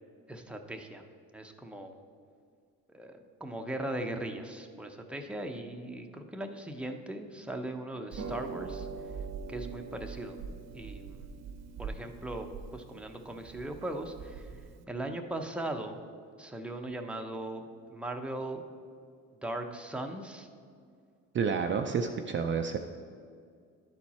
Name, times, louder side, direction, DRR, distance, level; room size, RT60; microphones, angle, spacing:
voice 1, 0.3-1.0 1.3-1.9 2.9-8.9 9.5-10.4 10.7-11.3 11.8-14.5 14.9-16.0 16.4-18.6 19.4-20.5, right 1 dB, 5° right, 4 dB, 0.7 m, -39 dB
Harp, 8.1-14.8, right 5 dB, 55° right, 0.8 m, -42 dB
voice 2, 21.3-22.8, right 6 dB, 35° right, 5 dB, 0.4 m, -29 dB
11.5 x 4.5 x 4.2 m, 2.2 s
supercardioid pair, 80°, 32 cm